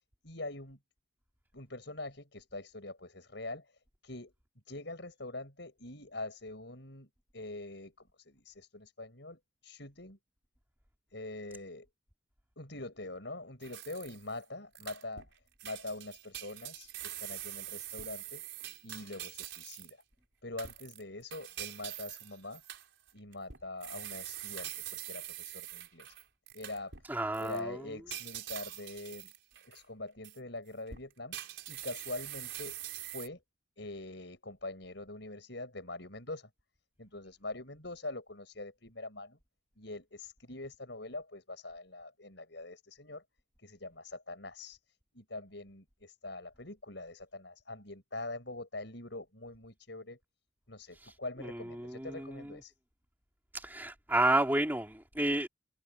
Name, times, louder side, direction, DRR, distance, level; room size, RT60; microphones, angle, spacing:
voice 1, 0.2-0.8 1.5-3.7 4.0-4.3 4.7-10.2 11.1-11.9 12.6-15.3 15.6-18.4 18.8-20.0 20.4-22.6 23.1-26.1 26.5-26.9 27.4-29.3 29.6-31.4 31.7-33.4 33.8-36.5 37.0-39.4 39.8-43.2 43.6-44.8 45.1-50.2 50.7-52.7, left 2 dB, 60° left, 7.5 m, -44 dB
sound 1, 13.6-14.4 14.8-15.3 15.6-20.0 20.6-27.1 27.3-27.6 28.1-29.8 30.2-30.4 30.9-33.3, right 13 dB, 65° right, 5.3 m, -44 dB
voice 2, 27.0-27.8 50.9-52.6 53.5-55.5, right 1 dB, 10° right, 2.7 m, -32 dB
head